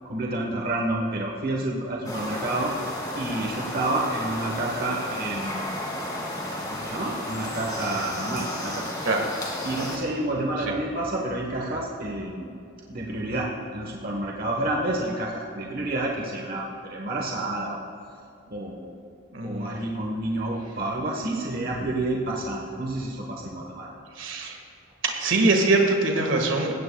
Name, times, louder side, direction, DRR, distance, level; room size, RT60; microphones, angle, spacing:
voice 1, 0.1-2.7 3.1-5.6 6.6-8.9 9.6-12.5 12.9-17.8 18.5-18.9 19.4-23.9, right 2 dB, 45° right, -1 dB, 1.2 m, -29 dB
sound 1, 2.0-10.0, left 1 dB, 20° left, 2.1 m, -33 dB
voice 2, 19.3-19.8 24.2-24.6 25.0-26.7, right 2 dB, 75° right, 2 dB, 1.7 m, -23 dB
20.0 x 16.5 x 2.3 m, 2.5 s
head